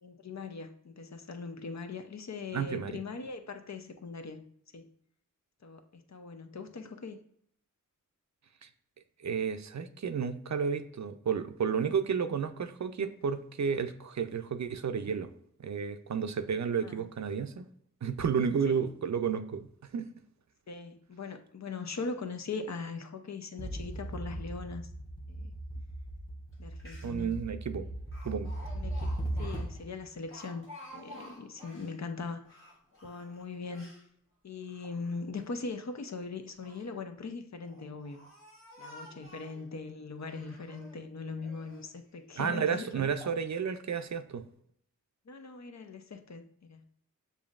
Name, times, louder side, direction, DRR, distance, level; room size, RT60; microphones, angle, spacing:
voice 1, 0.0-4.4 4.7-4.9 5.6-7.2 16.8-17.0 18.7-18.9 20.7-24.9 25.3-25.5 26.6-27.4 28.7-29.1 29.4-30.7 30.9-32.6 33.0-33.9 34.4-38.3 38.8-43.0 45.3-46.8, left 4 dB, 60° left, 7 dB, 0.6 m, -40 dB
voice 2, 2.5-2.9 8.6-8.7 9.2-15.3 15.6-17.6 18.0-19.6 19.9-20.1 27.0-27.9 28.3-28.5 42.4-44.4, right 6 dB, 60° right, 9 dB, 0.5 m, -32 dB
sound 1, 23.6-30.0, right 1 dB, 15° left, 0.9 m, -38 dB
Speech, 26.5-26.6 26.8-27.3 28.1-32.0 32.4-34.1 34.6-35.4 36.3-36.9 37.6-39.6 40.2-41.0 41.4-41.9 42.5-42.6 43.1-43.4 43.9-44.1, equal, 45° left, 1.5 m, -52 dB
6.9 x 2.6 x 2.4 m, 0.67 s
wide cardioid pair, 55°, 32 cm